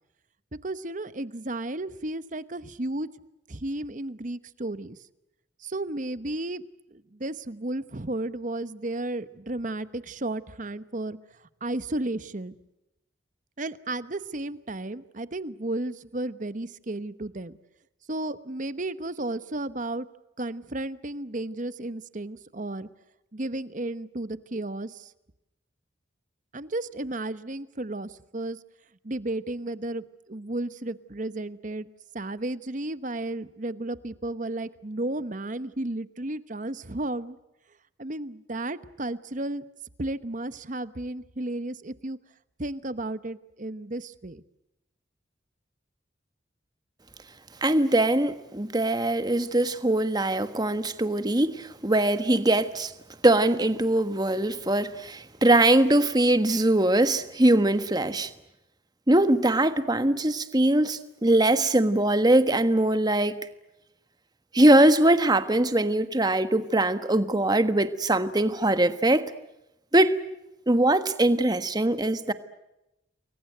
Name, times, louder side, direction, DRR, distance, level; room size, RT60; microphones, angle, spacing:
voice 1, 0.6-3.1 3.5-5.0 5.6-6.6 6.9-11.2 11.6-12.6 13.6-17.5 18.1-20.1 20.4-22.9 23.3-25.1 26.5-28.6 29.0-31.9 32.1-37.4 38.0-39.6 40.0-42.2 42.6-44.4, right 2 dB, 45° right, 14 dB, 1.0 m, -33 dB
voice 2, 47.6-52.9 53.2-58.3 59.1-63.5 64.5-69.3 69.9-70.2 70.7-72.3, right 1 dB, 20° right, 11 dB, 1.3 m, -22 dB
29.0 x 22.5 x 7.9 m, 0.91 s
head